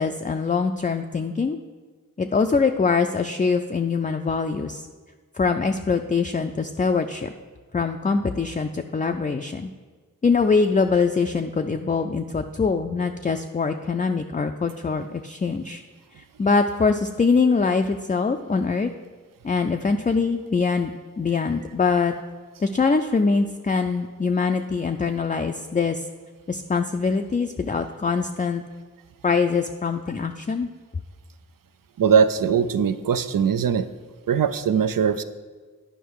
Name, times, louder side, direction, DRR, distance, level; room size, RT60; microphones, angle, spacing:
voice 1, 0.0-1.6 2.2-4.8 5.3-7.3 7.7-9.7 10.2-15.8 16.2-18.9 19.4-20.9 21.2-22.1 22.6-26.0 26.5-28.6 29.2-30.7, left 4 dB, 25° left, 5 dB, 0.3 m, -23 dB
voice 2, 32.0-33.9 34.3-35.2, right 7 dB, 85° right, 13 dB, 0.5 m, -20 dB
10.0 x 5.4 x 4.7 m, 1.4 s
wide cardioid pair, 65°, 33 cm